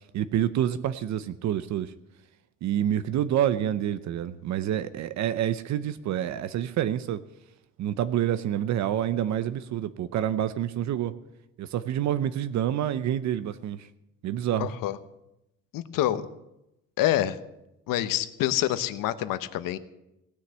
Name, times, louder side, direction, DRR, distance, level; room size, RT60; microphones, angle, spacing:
voice 1, 0.1-1.9 2.6-7.2 7.8-11.1 11.6-13.9 14.2-14.7, right 11 dB, 60° right, 14 dB, 0.7 m, -27 dB
voice 2, 14.6-15.0 15.7-16.3 17.0-17.4 17.9-19.8, left 13 dB, 90° left, 13 dB, 1.0 m, -26 dB
18.0 x 6.5 x 8.5 m, 0.89 s
cardioid pair, 160°, 32 cm